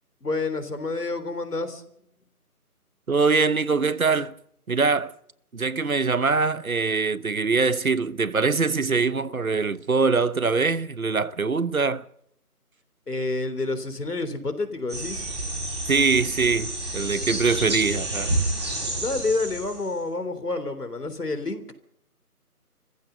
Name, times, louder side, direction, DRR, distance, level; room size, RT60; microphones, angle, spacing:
voice 1, 0.2-1.8 13.1-15.3 18.9-21.6, left 3 dB, 80° left, 3.6 m, -29 dB
voice 2, 3.1-4.3 4.7-5.1 5.5-12.0 15.9-18.3, right 4 dB, 65° right, 1.1 m, -23 dB
sound 1, 14.9-20.0, right 1 dB, 15° right, 4.9 m, -29 dB
26.5 x 15.0 x 6.8 m
figure-of-eight pair, 180°, 46 cm